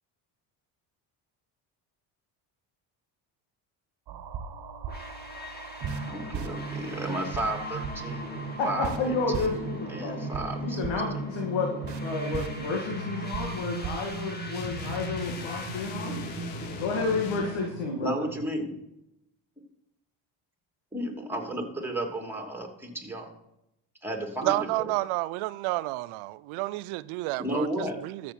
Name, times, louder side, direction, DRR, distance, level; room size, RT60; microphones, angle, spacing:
sound 1, 4.1-18.5, right 5 dB, 50° right, 1.6 m, -37 dB
sound 2, 4.9-17.7, left 2 dB, 20° left, 2.0 m, -42 dB
voice 1, 6.1-10.9 18.0-18.7 20.9-23.3 24.0-24.9 27.4-28.0, right 1 dB, 5° right, 2.9 m, -33 dB
voice 2, 8.6-10.3 10.6-16.2 16.8-18.3, left 4 dB, 65° left, 2.2 m, -31 dB
sound 3, 14.5-17.6, left 10 dB, 85° left, 0.9 m, -41 dB
voice 3, 24.4-28.3, right 19 dB, 75° right, 0.6 m, -30 dB
13.5 x 7.4 x 4.5 m
supercardioid pair, 75°, 49 cm